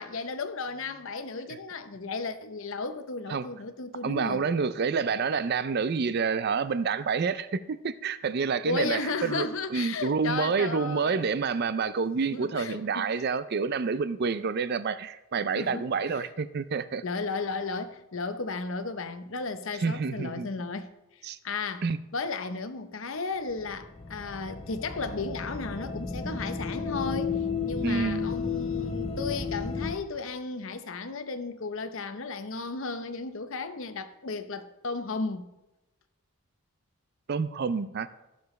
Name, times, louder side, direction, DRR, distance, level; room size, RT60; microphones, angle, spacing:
voice 1, 0.0-4.4 8.6-11.3 12.3-13.1 15.6-15.9 16.1-16.3 17.0-21.9 22.1-35.5, left 4 dB, 60° left, 0.8 m, -34 dB
voice 2, 4.0-17.0 19.8-20.5 21.2-21.4 21.8-22.0 27.8-28.3 37.3-38.1, right 5 dB, 45° right, 0.4 m, -28 dB
sound 1, 23.5-30.0, left 5 dB, 25° left, 0.7 m, -33 dB
16.5 x 6.9 x 3.2 m
head